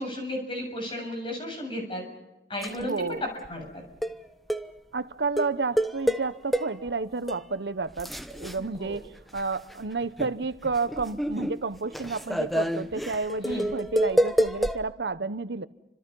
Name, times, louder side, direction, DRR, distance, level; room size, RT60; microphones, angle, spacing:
voice 1, 0.0-2.0 2.5-3.8 8.7-9.0 13.4-13.7, left 1 dB, 30° left, 7.2 m, -34 dB
sound 1, 2.6-2.9 3.4-3.5 4.0-4.2 4.5-4.7 5.4-6.9 7.3-7.4 7.9-9.7 10.0-14.8, equal, ahead, 0.8 m, -28 dB
voice 2, 2.8-3.2 4.9-9.0 9.3-15.7, right 4 dB, 80° right, 0.9 m, -31 dB
30.0 x 26.0 x 5.5 m
head